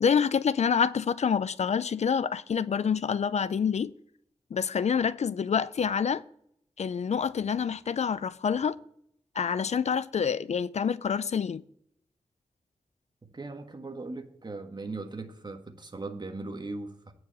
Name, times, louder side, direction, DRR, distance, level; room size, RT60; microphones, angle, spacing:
voice 1, 0.0-3.9 4.5-6.2 6.8-8.8 9.4-11.6, left 7 dB, 65° left, 0.4 m, -27 dB
voice 2, 13.3-17.1, right 3 dB, 40° right, 1.4 m, -39 dB
8.9 x 4.8 x 7.5 m
wide cardioid pair, 70°, 12 cm